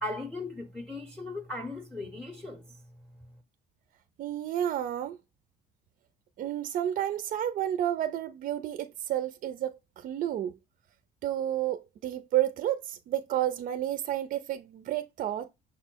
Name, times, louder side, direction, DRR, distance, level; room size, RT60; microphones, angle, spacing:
voice 1, 0.0-2.7, left 2 dB, 5° left, 0.6 m, -37 dB
voice 2, 4.2-5.2 6.4-10.5 11.2-15.5, right 12 dB, 50° right, 0.4 m, -31 dB
6.0 x 2.0 x 4.4 m
cardioid pair, 110°, 17 cm